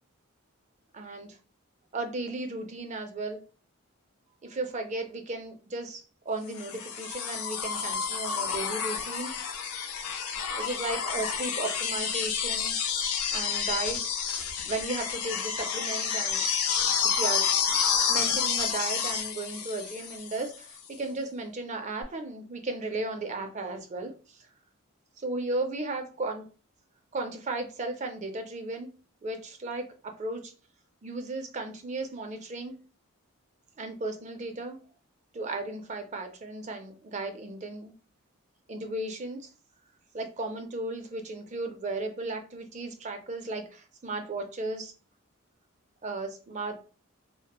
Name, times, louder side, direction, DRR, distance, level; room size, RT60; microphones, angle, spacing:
voice 1, 0.9-1.4 1.9-3.4 4.4-9.6 10.6-12.7 13.3-14.0 14.6-16.4 17.0-17.4 18.1-24.4 25.2-26.5 27.1-28.9 29.2-30.5 31.0-32.7 33.8-34.8 35.3-37.9 38.7-39.5 40.1-44.9 46.0-46.8, right 2 dB, 35° right, 0.4 m, -35 dB
sound 1, 6.6-20.6 22.0-22.1, left 7 dB, 85° left, 0.4 m, -29 dB
2.9 x 2.1 x 2.2 m
head